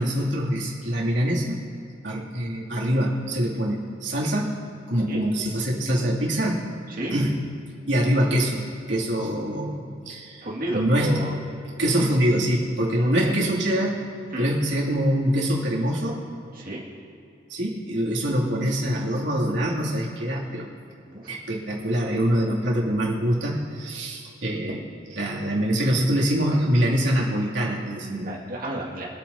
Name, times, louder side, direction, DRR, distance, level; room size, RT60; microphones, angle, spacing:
voice 1, 0.0-1.6 2.0-4.5 4.9-6.7 7.1-7.4 7.9-10.5 10.7-11.2 11.8-14.0 14.4-16.2 17.5-20.7 21.3-24.8 25.1-28.3, equal, 85° right, -4 dB, 2.5 m, -24 dB
voice 2, 10.4-11.4 13.0-13.3 14.3-14.5 16.5-16.8 21.1-21.4 28.2-29.1, right 1 dB, 55° right, -4 dB, 2.0 m, -32 dB
24.5 x 8.8 x 2.7 m, 2.6 s
head